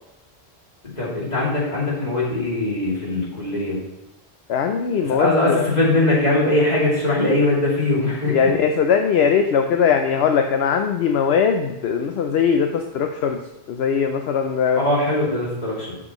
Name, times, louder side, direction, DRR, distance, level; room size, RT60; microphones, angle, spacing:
voice 1, 0.8-3.8 5.0-8.5 14.8-15.9, left 2 dB, 40° left, -6 dB, 2.7 m, -21 dB
voice 2, 4.5-5.7 8.3-13.4 13.7-14.8, left 6 dB, 75° left, 5 dB, 0.8 m, -20 dB
11.5 x 6.2 x 3.0 m, 0.91 s
omnidirectional pair, 1.1 m